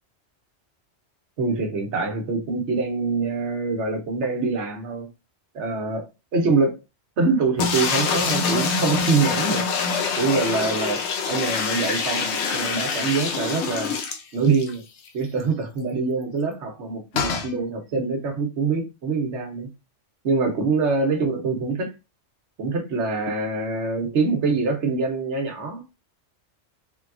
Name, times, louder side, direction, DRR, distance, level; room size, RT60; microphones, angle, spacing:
voice 1, 1.4-5.1 5.5-6.8 7.2-9.6 10.2-14.0 14.3-14.8 15.1-19.7 20.2-21.9 22.6-25.8, right 4 dB, 75° right, 1.1 m, -24 dB
sound 1, 7.6-14.7 15.1-15.2 15.4-15.5 17.1-17.5, left 5 dB, 75° left, 0.9 m, -25 dB
3.3 x 2.3 x 2.4 m
omnidirectional pair, 1.2 m